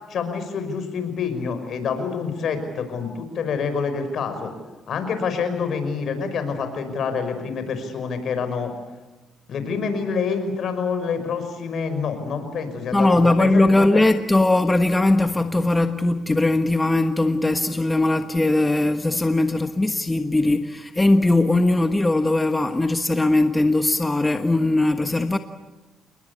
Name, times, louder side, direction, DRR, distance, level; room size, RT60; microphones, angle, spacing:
voice 1, 0.1-4.5 4.9-8.7 9.5-14.0, left 5 dB, 65° left, 5.6 m, -27 dB
voice 2, 12.9-25.4, left 2 dB, 15° left, 1.3 m, -20 dB
28.5 x 21.5 x 8.4 m
cardioid pair, 90°, 0 cm